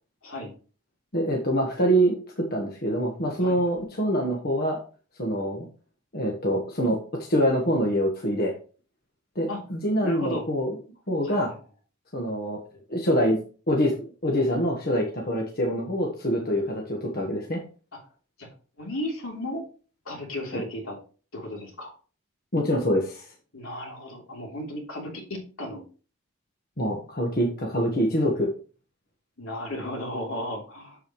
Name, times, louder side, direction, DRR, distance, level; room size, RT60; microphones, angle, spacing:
voice 1, 0.2-0.5 3.4-3.6 9.5-9.6 10.0-10.4 11.2-11.5 18.4-18.5 18.8-19.6 20.0-21.0 21.3-21.9 23.5-25.8 29.4-31.0, left 1 dB, 75° left, -1 dB, 3.2 m, -34 dB
voice 2, 1.1-4.8 5.2-5.7 6.1-8.5 9.3-10.7 11.1-11.5 12.1-12.6 12.9-13.4 13.7-17.6 20.5-20.6 22.5-23.3 26.8-28.5, equal, 45° left, 0 dB, 1.4 m, -25 dB
7.6 x 7.2 x 3.1 m, 0.37 s
head